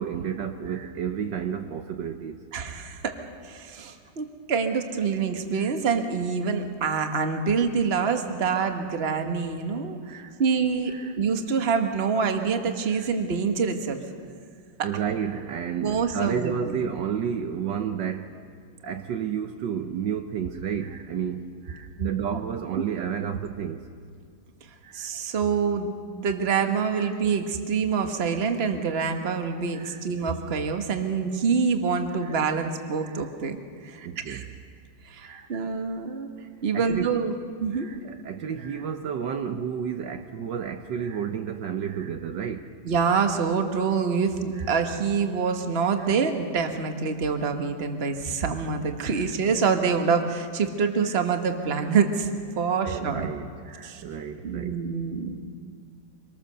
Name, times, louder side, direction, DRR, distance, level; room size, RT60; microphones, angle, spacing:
voice 1, 0.0-2.4 5.5-5.7 6.6-6.7 10.0-10.4 10.9-11.1 12.9-13.1 14.8-18.4 18.8-23.9 24.8-25.1 26.9-27.2 29.7-30.0 32.2-32.4 33.0-33.3 34.0-34.5 35.2-35.5 36.7-37.1 37.7-42.7 44.6-44.8 46.0-46.2 49.1-49.4 51.0-51.2 52.9-54.8, right 8 dB, 65° right, 7 dB, 1.4 m, -32 dB
voice 2, 2.5-3.2 3.4-10.0 10.4-14.0 14.8-14.9 15.8-16.8 22.0-22.1 22.7-22.8 24.9-34.4 35.0-36.3 36.6-37.3 37.6-37.9 42.8-52.3 52.6-53.3 53.8-54.0 54.4-55.4, right 5 dB, 35° right, 6 dB, 1.3 m, -26 dB
25.0 x 19.5 x 6.7 m, 2.1 s
omnidirectional pair, 2.2 m